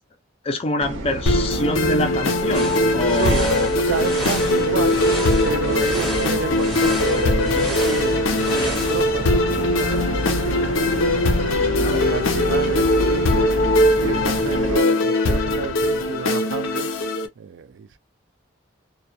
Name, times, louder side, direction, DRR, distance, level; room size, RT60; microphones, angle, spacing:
voice 1, 0.4-3.7 11.8-12.0, left 1 dB, 30° left, 0.4 m, -25 dB
sound 1, 0.8-14.8, equal, 85° right, 0.7 m, -30 dB
sound 2, 1.3-17.3, left 1 dB, 85° left, 0.5 m, -21 dB
sound 3, 2.5-9.1, right 1 dB, ahead, 0.7 m, -32 dB
voice 2, 3.1-5.0 5.4-11.1 11.7-13.6 14.0-16.9 17.4-18.0, right 6 dB, 70° right, 0.3 m, -30 dB
2.2 x 2.2 x 2.7 m
head